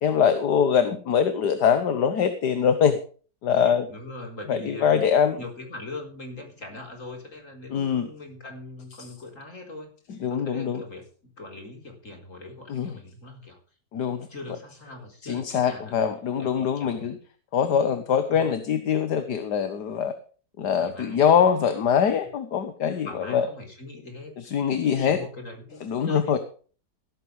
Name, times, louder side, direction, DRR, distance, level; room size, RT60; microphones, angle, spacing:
voice 1, 0.0-3.0 3.4-3.9 4.5-5.4 7.7-8.1 10.2-10.8 12.7-12.9 13.9-14.3 15.2-17.2 17.5-20.1 20.6-23.5 24.4-25.2 25.8-26.4, left 7 dB, 70° left, 10 dB, 1.8 m, -23 dB
voice 2, 3.5-5.0 5.4-9.9 10.3-13.6 14.3-15.9 16.3-17.1 18.3-18.5 20.7-21.2 23.0-24.3 24.7-25.8 26.1-26.4, left 2 dB, 45° left, 3 dB, 4.7 m, -41 dB
16.0 x 13.5 x 3.3 m, 0.40 s
omnidirectional pair, 1.9 m